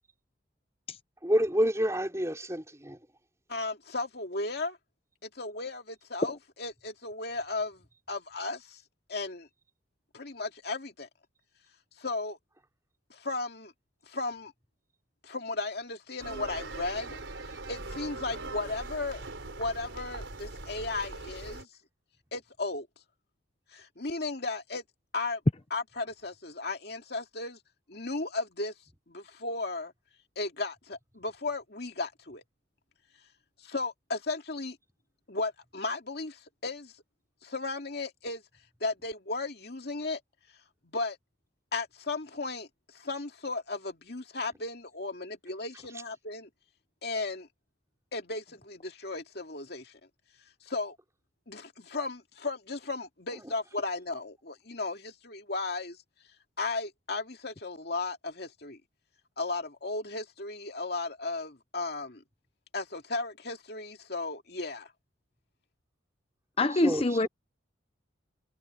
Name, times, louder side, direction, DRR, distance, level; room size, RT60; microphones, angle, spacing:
voice 1, 1.2-3.0 53.4-53.5 66.7-67.3, equal, 15° right, 4.6 m, -29 dB
voice 2, 3.5-4.8 5.2-8.8 9.1-9.5 10.1-11.1 12.0-12.4 13.1-13.7 14.1-14.5 15.2-17.2 17.7-21.7 22.3-22.9 23.7-24.8 25.1-25.4 25.7-27.6 27.9-28.7 29.1-29.9 30.4-32.4 33.6-34.8 35.3-36.9 37.4-38.4 38.8-40.2 40.8-41.2 41.7-42.7 42.9-46.5 47.0-47.5 48.1-50.0 50.6-51.0 51.5-56.0 56.6-58.8 59.4-62.2 62.7-64.9, left 3 dB, 60° left, 2.4 m, -35 dB
sound 1, 16.2-21.6, right 2 dB, 85° right, 4.3 m, -41 dB
voice 3, 66.6-67.3, left 2 dB, 30° left, 0.8 m, -25 dB
head